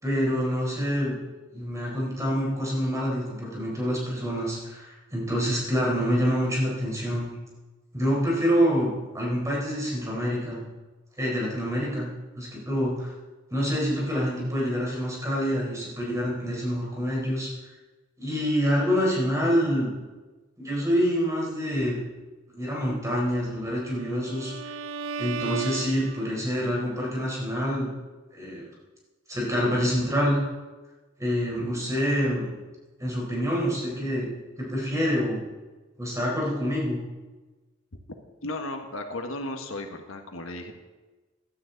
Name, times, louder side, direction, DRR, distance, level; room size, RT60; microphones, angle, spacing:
voice 1, 0.0-1.2 1.5-7.3 7.9-10.6 11.2-12.1 12.3-13.1 13.5-17.5 18.2-19.9 20.6-22.0 22.5-24.7 25.2-27.9 28.3-28.7 29.3-30.4 31.2-32.5 33.0-34.3 34.6-35.4 36.0-37.0, equal, 15° right, -3 dB, 4.4 m, -26 dB
Bowed string instrument, 23.6-26.7, right 5 dB, 85° right, 0.6 m, -36 dB
voice 2, 38.4-40.7, left 2 dB, 85° left, 5 dB, 1.5 m, -35 dB
16.0 x 12.5 x 4.0 m, 1.2 s
head